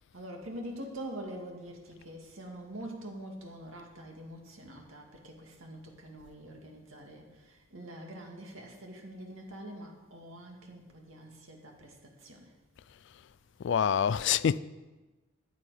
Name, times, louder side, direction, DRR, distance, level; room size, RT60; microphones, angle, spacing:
voice 1, 0.1-12.5, right 1 dB, 75° right, 2.1 m, -45 dB
voice 2, 13.6-14.6, left 8 dB, 55° left, 0.3 m, -26 dB
14.0 x 9.4 x 5.0 m
head